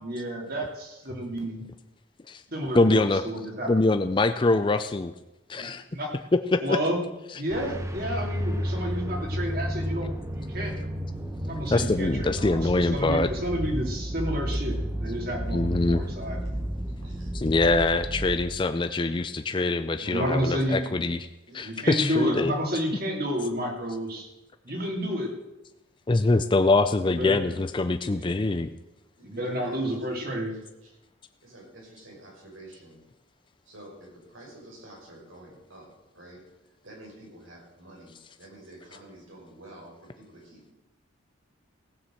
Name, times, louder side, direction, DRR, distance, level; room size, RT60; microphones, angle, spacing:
voice 1, 0.0-1.6 2.5-3.7 5.6-6.1 6.6-7.0 7.4-10.7 11.4-16.4 20.0-21.0 21.6-24.3 24.6-25.3 27.1-27.6 28.1-28.2 29.2-30.5, equal, 50° right, 1 dB, 2.9 m, -30 dB
voice 2, 2.7-3.2 3.7-5.1 5.5-5.8 6.3-6.8 11.7-13.3 15.5-16.0 17.3-21.3 21.5-22.5 26.1-28.7, left 2 dB, 25° left, 9 dB, 0.4 m, -24 dB
sound 1, 7.5-18.5, equal, 15° right, 0.8 m, -32 dB
voice 3, 16.9-17.3 21.4-21.8 29.2-29.8 30.8-30.9 31.4-33.0 33.7-35.9 36.1-36.4 36.8-40.7, right 1 dB, 85° right, -2 dB, 6.2 m, -48 dB
16.0 x 7.2 x 7.7 m, 1.0 s
head